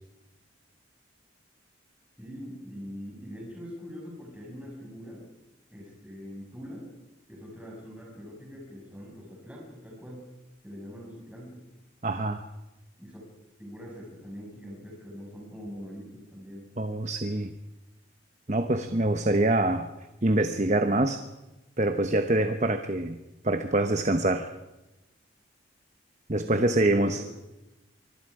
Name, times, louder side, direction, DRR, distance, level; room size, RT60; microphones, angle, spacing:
voice 1, 2.2-5.2 5.7-6.9 7.3-10.2 10.6-11.6 13.0-13.3 13.6-16.7 26.4-27.3, equal, 5° right, -4 dB, 6.2 m, -43 dB
voice 2, 12.0-12.4 16.8-17.5 18.5-19.9 20.2-21.2 21.8-23.2 23.4-24.5 26.3-27.2, right 2 dB, 35° right, 7 dB, 1.0 m, -25 dB
25.5 x 24.5 x 4.9 m, 1.0 s
head